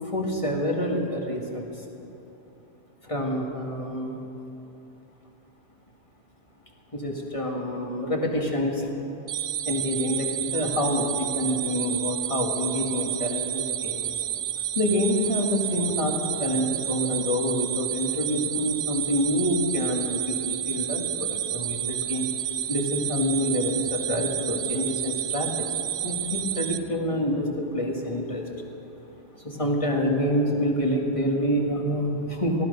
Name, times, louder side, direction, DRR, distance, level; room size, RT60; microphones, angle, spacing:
voice 1, 0.1-1.7 3.0-4.2 6.9-8.9 9.7-14.1 14.8-22.3 22.7-28.5 29.3-32.7, equal, 30° left, 0 dB, 1.9 m, -27 dB
sound 1, 9.3-26.8, right 11 dB, 65° right, 0.8 m, -30 dB
19.0 x 14.0 x 5.4 m, 3.0 s
omnidirectional pair, 1.1 m